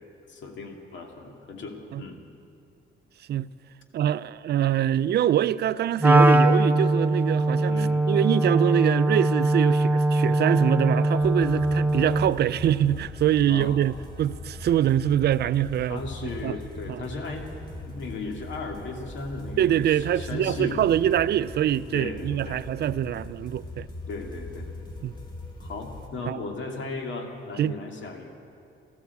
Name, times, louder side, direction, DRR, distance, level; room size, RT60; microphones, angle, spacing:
voice 1, 0.3-2.2 7.7-8.1 13.5-13.8 15.8-17.5 17.8-19.7 20.2-21.2 21.9-22.7 24.1-24.7 25.6-28.3, left 3 dB, 70° left, 2.3 m, -36 dB
voice 2, 3.9-7.7 8.1-16.0 16.4-16.6 16.9-17.0 19.6-23.9 25.0-25.1 26.3-26.4 27.6-27.8, right 11 dB, 55° right, 0.4 m, -24 dB
Wind instrument woodwind instrument, 6.0-12.4, right 1 dB, 10° right, 0.6 m, -21 dB
sound 1, 11.2-26.1, left 2 dB, 20° left, 2.6 m, -41 dB
13.5 x 13.0 x 8.2 m
cardioid pair, 90°, 20 cm